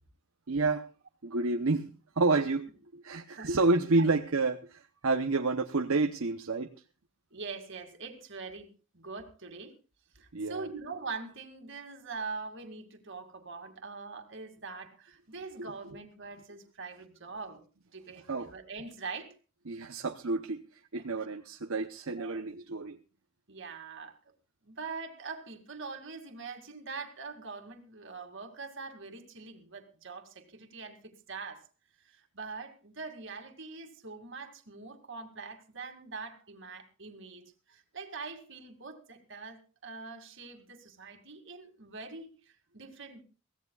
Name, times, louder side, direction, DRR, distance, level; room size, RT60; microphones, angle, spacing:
voice 1, 0.5-0.9 1.2-2.7 2.9-6.7 10.3-10.7 15.6-15.7 18.3-18.5 19.7-23.0, right 3 dB, 75° right, 5 dB, 0.9 m, -29 dB
voice 2, 7.3-8.7 8.9-9.7 10.1-17.6 17.9-19.4 20.9-21.0 22.1-22.4 23.5-24.2 24.6-31.7 32.0-37.4 37.7-43.2, right 4 dB, 55° right, 5 dB, 2.4 m, -43 dB
23.0 x 16.5 x 2.4 m, 0.32 s
head